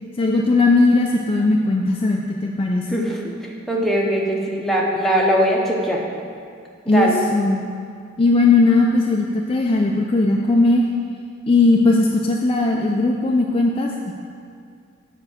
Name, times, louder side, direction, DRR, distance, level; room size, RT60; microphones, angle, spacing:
voice 1, 0.2-2.9 6.9-7.6 8.2-10.8 11.5-14.1, left 3 dB, 30° left, 0 dB, 0.4 m, -18 dB
voice 2, 2.9-6.0 6.9-7.2, equal, ahead, -2 dB, 0.9 m, -21 dB
6.9 x 4.6 x 6.9 m, 2.2 s
head